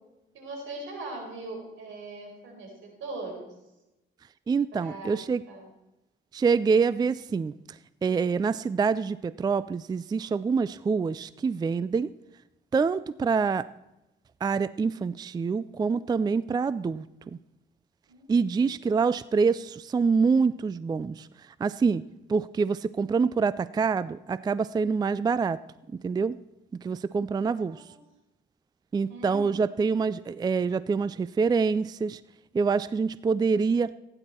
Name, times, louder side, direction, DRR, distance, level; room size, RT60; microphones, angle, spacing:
voice 1, 0.3-3.5 4.7-5.2 5.5-5.7 18.1-18.3 18.5-18.9 27.4-28.0 29.1-29.6, right 2 dB, 75° right, 1 dB, 4.8 m, -41 dB
voice 2, 4.5-5.4 6.3-12.1 12.7-13.7 14.4-17.0 18.3-21.3 21.6-22.0 22.3-25.6 26.0-26.4 26.8-27.8 28.9-32.2 32.5-33.9, right 5 dB, 20° right, 17 dB, 0.3 m, -26 dB
16.0 x 10.0 x 4.3 m, 0.96 s
cardioid pair, 90°, 20 cm